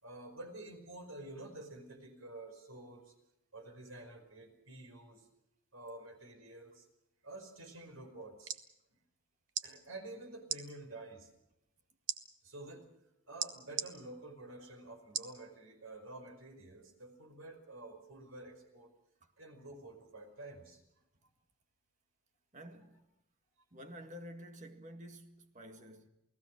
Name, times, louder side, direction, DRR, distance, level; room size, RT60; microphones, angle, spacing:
voice 1, 0.0-3.1 3.5-5.3 5.7-6.9 7.2-8.5 9.6-11.3 12.4-12.9 13.3-18.9 19.4-20.8, right 2 dB, 75° right, 5.1 m, -49 dB
sound 1, 8.2-8.6 9.5-9.7 10.4-10.6 12.1-12.2 13.4-13.9 15.1-15.4 15.9-16.0, right 9 dB, 60° right, 1.3 m, -36 dB
voice 2, 22.5-23.0 23.7-26.1, equal, 35° right, 2.0 m, -50 dB
29.0 x 18.0 x 6.5 m
head